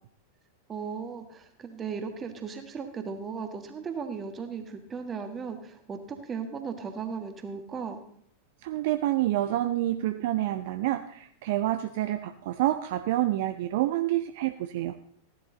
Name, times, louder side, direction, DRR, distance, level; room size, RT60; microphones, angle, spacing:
voice 1, 0.7-8.0, right 5 dB, 20° right, 6 dB, 1.7 m, -36 dB
voice 2, 8.6-15.0, right 14 dB, 50° right, 8 dB, 0.5 m, -28 dB
15.5 x 11.0 x 3.9 m, 0.64 s
figure-of-eight pair, 90°, 0 cm